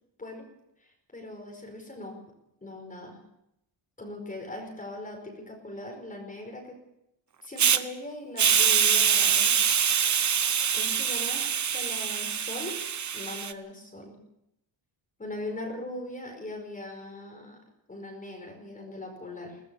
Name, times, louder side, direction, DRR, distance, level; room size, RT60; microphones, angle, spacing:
voice 1, 0.8-2.2 2.6-3.2 4.0-6.8 7.4-10.0 10.7-12.8 13.1-14.2 15.2-17.6 17.9-19.6, left 1 dB, 15° left, 2 dB, 4.9 m, -40 dB
Hiss, 7.6-7.8 8.4-13.5, right 8 dB, 35° right, 1.1 m, -24 dB
22.0 x 18.5 x 7.0 m, 0.83 s
cardioid pair, 165°, 47 cm